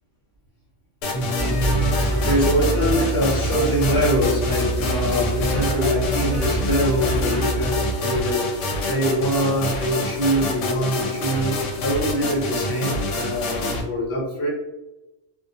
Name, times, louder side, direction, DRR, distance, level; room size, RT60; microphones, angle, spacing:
sound 1, 1.0-13.8, left 2 dB, 90° left, 0.9 m, -27 dB
voice 1, 1.1-14.5, equal, 65° left, -4 dB, 1.0 m, -24 dB
sound 2, 1.4-8.0, right 1 dB, 15° left, 0.4 m, -26 dB
2.4 x 2.1 x 2.7 m, 1.0 s
omnidirectional pair, 1.2 m